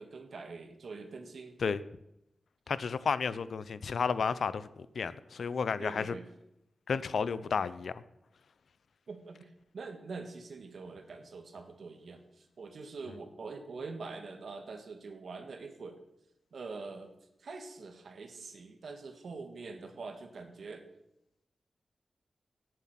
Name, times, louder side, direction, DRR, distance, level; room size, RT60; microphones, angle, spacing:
voice 1, 0.0-1.6 5.8-6.3 9.1-16.0 16.5-17.1 17.4-20.8, right 4 dB, 65° right, 1.8 m, -44 dB
voice 2, 2.7-6.1 6.9-8.0, left 5 dB, 70° left, 0.7 m, -32 dB
17.5 x 7.7 x 5.9 m
wide cardioid pair, 140°, 0 cm